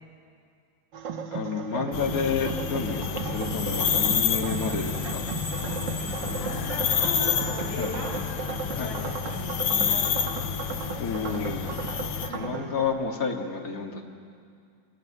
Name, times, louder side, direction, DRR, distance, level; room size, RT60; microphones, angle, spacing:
sound 1, 0.9-12.9, right 5 dB, 70° right, 2.1 m, -35 dB
voice 1, 1.3-5.2 7.8-7.9 8.8-8.9 11.0-11.7 12.3-14.0, left 5 dB, 50° left, 1 dB, 2.5 m, -30 dB
sound 2, 1.9-12.3, left 8 dB, 85° left, 1.7 m, -29 dB
Screech, 2.8-8.7, equal, ahead, 6.8 m, -38 dB
voice 2, 6.0-8.1 8.7-9.0 9.3-10.4 12.2-12.5, left 1 dB, 70° left, 0 dB, 6.5 m, -38 dB
26.5 x 18.5 x 9.8 m, 2.3 s
omnidirectional pair, 2.1 m